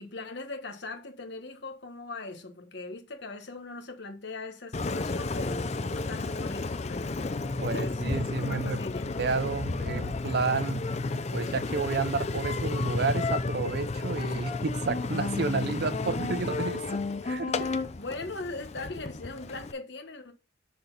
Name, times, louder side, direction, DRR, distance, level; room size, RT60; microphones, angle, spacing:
voice 1, 0.0-7.1 7.6-8.0 8.4-9.1 17.6-20.3, left 3 dB, 55° left, 1.3 m, -40 dB
Engine, 4.7-19.7, left 3 dB, 35° left, 0.5 m, -32 dB
voice 2, 7.6-8.8 9.2-10.8 11.3-17.5, right 4 dB, 50° right, 0.5 m, -31 dB
6.8 x 4.0 x 5.3 m
head